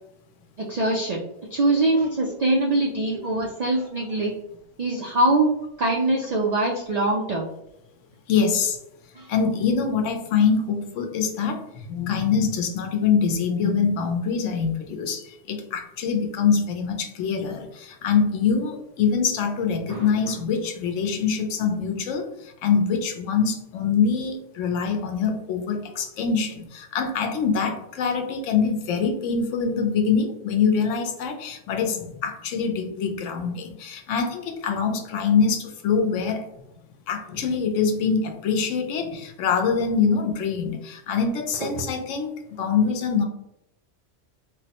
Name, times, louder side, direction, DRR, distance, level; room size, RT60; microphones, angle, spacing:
voice 1, 0.6-1.2 1.5-4.3 4.8-5.5 5.8-7.5 9.2-9.3 19.9-20.1, right 2 dB, 80° right, -1 dB, 0.3 m, -23 dB
voice 2, 8.3-8.8 9.3-36.4 37.1-43.2, left 6 dB, 90° left, 4 dB, 1.0 m, -24 dB
3.5 x 2.1 x 2.8 m, 0.83 s
omnidirectional pair, 1.2 m